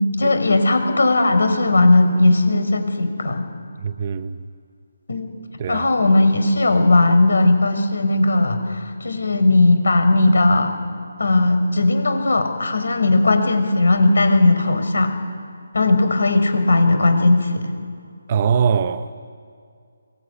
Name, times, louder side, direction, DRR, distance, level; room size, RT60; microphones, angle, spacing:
voice 1, 0.0-3.5 5.1-5.3 5.7-10.7 11.2-15.2 15.7-17.7, left 2 dB, 75° left, 5.3 m, -17 dB
voice 2, 3.8-4.4 5.6-5.9 18.3-19.3, right 7 dB, 25° right, 0.7 m, -22 dB
24.0 x 19.0 x 9.8 m
hypercardioid pair, 175°, 0 cm